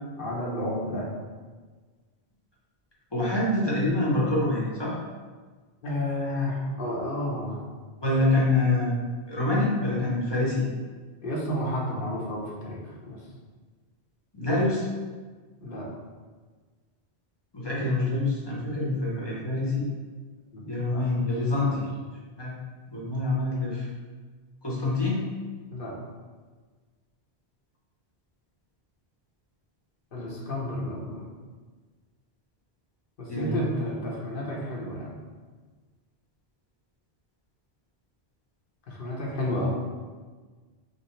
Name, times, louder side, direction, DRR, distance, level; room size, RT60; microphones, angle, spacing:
voice 1, 0.2-1.1 5.8-7.6 11.2-13.2 15.6-15.9 20.5-21.0 21.5-21.7 25.7-25.9 30.1-31.3 33.2-35.1 38.9-39.7, left 1 dB, 60° left, -4 dB, 0.9 m, -31 dB
voice 2, 3.1-4.9 8.0-8.9 9.3-10.7 14.3-14.9 17.5-19.9 20.7-21.9 22.4-22.5 22.9-23.9 24.6-25.3 30.6-30.7 33.3-33.8 39.5-39.7, left 2 dB, 25° left, -5 dB, 0.8 m, -26 dB
5.1 x 2.0 x 3.1 m, 1.4 s
omnidirectional pair, 1.1 m